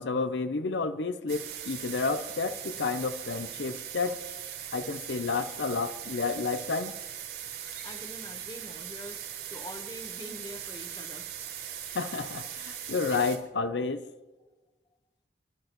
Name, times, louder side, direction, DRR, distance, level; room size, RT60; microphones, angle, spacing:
voice 1, 0.0-4.2 4.7-6.9 11.9-14.0, left 4 dB, 85° left, 0.6 m, -30 dB
bali starling, 1.3-13.4, right 9 dB, 65° right, 3.9 m, -40 dB
voice 2, 7.7-11.3, left 1 dB, 25° left, 1.0 m, -44 dB
25.0 x 11.5 x 3.0 m
head